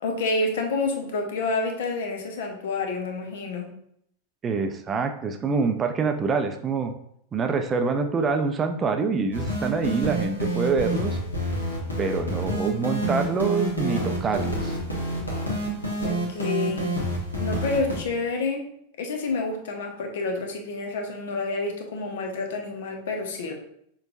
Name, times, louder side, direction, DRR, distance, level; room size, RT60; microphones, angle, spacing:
voice 1, 0.0-3.7 16.0-17.0 17.4-18.6 19.0-23.5, left 3 dB, 55° left, 3 dB, 0.8 m, -28 dB
voice 2, 4.4-6.9 7.3-11.2 12.0-14.8, right 4 dB, 20° right, 6 dB, 0.4 m, -26 dB
sound 1, 9.3-18.0, right 1 dB, 80° left, 1.3 m, -28 dB
6.1 x 3.1 x 2.5 m, 0.70 s
figure-of-eight pair, 90°, 0 cm